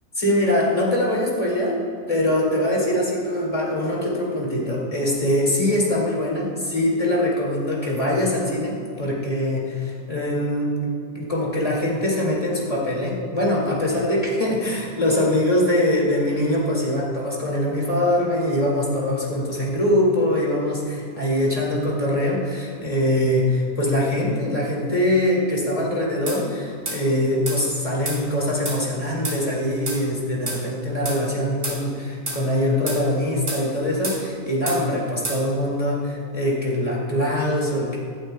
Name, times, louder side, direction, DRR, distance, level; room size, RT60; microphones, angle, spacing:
voice 1, 0.2-1.8 2.1-38.0, left 1 dB, 20° left, -4 dB, 2.1 m, -23 dB
sound 1, 26.3-26.4 26.9-27.0 27.5-27.6 28.0-28.2 28.6-28.8 29.2-29.4 29.9-30.0 30.5-30.6 31.0-31.2 31.6-31.8 32.3-32.4 32.9-33.0 33.5-33.6 34.0-34.2 34.7-34.8 35.2-35.4, right 2 dB, 45° right, 2.9 m, -29 dB
16.0 x 11.5 x 2.2 m, 2.3 s
omnidirectional pair, 1.8 m